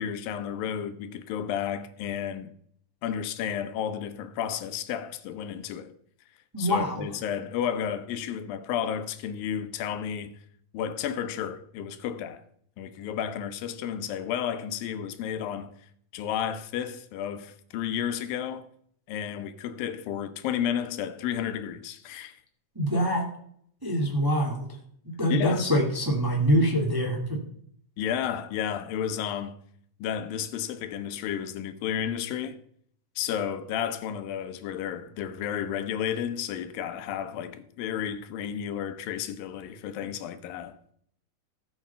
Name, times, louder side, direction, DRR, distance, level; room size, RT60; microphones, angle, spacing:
voice 1, 0.0-2.5 3.0-5.9 6.6-10.4 10.7-12.4 12.8-15.7 16.1-18.7 19.1-22.4 25.3-25.6 28.0-29.6 30.0-32.6 33.2-40.8, left 9 dB, 85° left, 2.7 m, -32 dB
voice 2, 6.5-7.1 22.7-23.3 23.8-24.7 25.2-27.4, equal, 10° right, 1.3 m, -24 dB
17.0 x 6.0 x 5.6 m
omnidirectional pair, 4.0 m